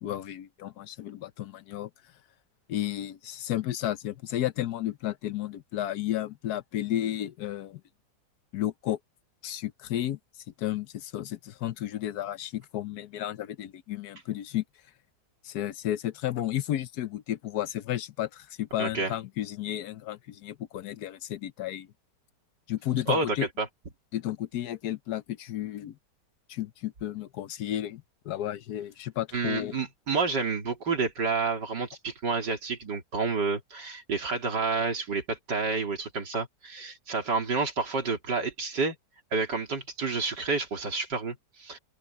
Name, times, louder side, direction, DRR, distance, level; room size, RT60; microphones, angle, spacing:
voice 1, 0.0-1.9 2.7-7.8 8.5-9.0 9.4-10.2 10.6-14.6 15.4-21.9 22.7-23.5 24.1-26.0 26.5-29.8, left 12 dB, 70° left, 1.2 m, -32 dB
voice 2, 18.8-19.1 23.1-23.7 29.3-39.0 39.3-41.8, right 4 dB, 75° right, 3.7 m, -29 dB
open air
omnidirectional pair, 1.9 m